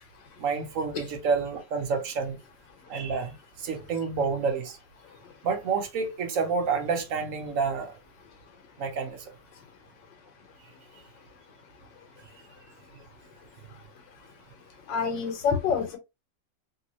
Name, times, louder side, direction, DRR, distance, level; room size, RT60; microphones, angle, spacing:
voice 1, 0.4-2.4 2.9-4.8 5.4-7.9 8.8-9.2, right 5 dB, 60° right, 1.0 m, -29 dB
voice 2, 14.9-16.0, left 6 dB, 90° left, 1.6 m, -26 dB
3.4 x 2.8 x 2.9 m
omnidirectional pair, 1.9 m